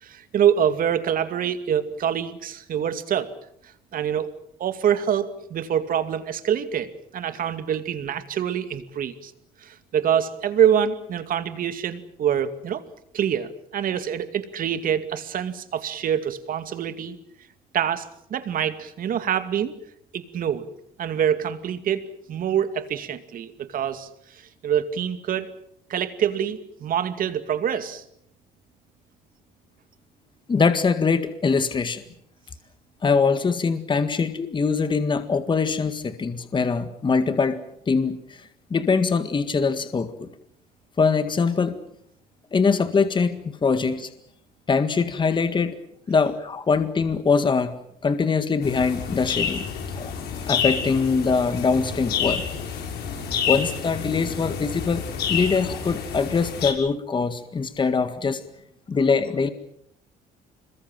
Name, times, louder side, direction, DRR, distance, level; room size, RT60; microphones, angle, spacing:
voice 1, 0.0-3.3 3.9-9.3 9.6-12.8 13.1-17.2 17.7-19.7 20.1-20.7 21.0-25.5 25.9-28.0, right 9 dB, 55° right, 10 dB, 2.4 m, -25 dB
voice 2, 30.5-32.0 33.0-38.2 38.7-40.3 41.0-41.8 42.5-44.1 44.7-45.8 46.1-47.7 48.0-49.7 49.9-50.1 50.5-52.4 53.5-55.0 55.3-58.4 58.9-59.5, left 5 dB, 30° left, 10 dB, 1.9 m, -22 dB
sound 1, 48.6-56.7, left 7 dB, 70° left, 6.5 m, -29 dB
26.5 x 22.0 x 7.6 m, 0.72 s
cardioid pair, 110°, 17 cm